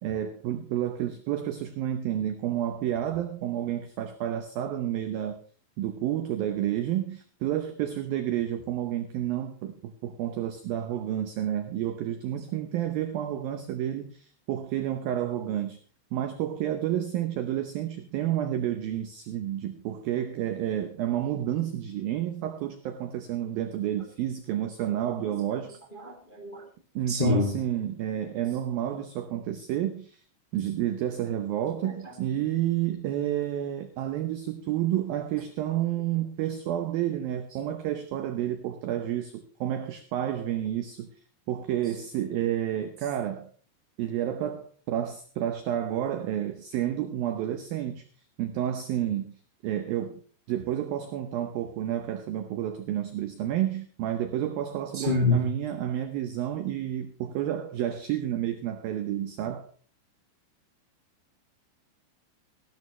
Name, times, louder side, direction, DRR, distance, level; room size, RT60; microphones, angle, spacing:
voice 1, 0.0-5.4 5.8-15.8 16.1-25.7 27.0-30.2 30.5-41.1 41.5-43.5 44.0-48.1 48.4-49.4 49.6-50.2 50.5-59.7, right 11 dB, 85° right, 9 dB, 2.0 m, -30 dB
voice 2, 25.2-26.6 27.1-27.5 31.8-32.1 54.9-55.5, left 3 dB, 20° left, 1 dB, 1.4 m, -28 dB
17.0 x 13.0 x 3.3 m, 0.41 s
omnidirectional pair, 5.5 m